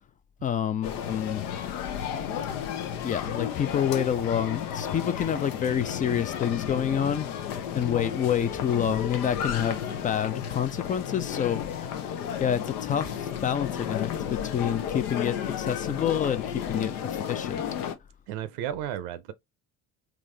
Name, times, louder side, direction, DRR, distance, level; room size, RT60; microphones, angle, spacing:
voice 1, 0.4-1.4 3.0-7.3 7.7-11.6 12.4-17.6, left 9 dB, 20° left, 0.3 m, -28 dB
sound 1, 0.8-18.0, left 9 dB, 75° left, 0.7 m, -33 dB
voice 2, 18.3-19.3, right 10 dB, 60° right, 0.6 m, -33 dB
3.7 x 2.9 x 3.1 m
hypercardioid pair, 60°, 45 cm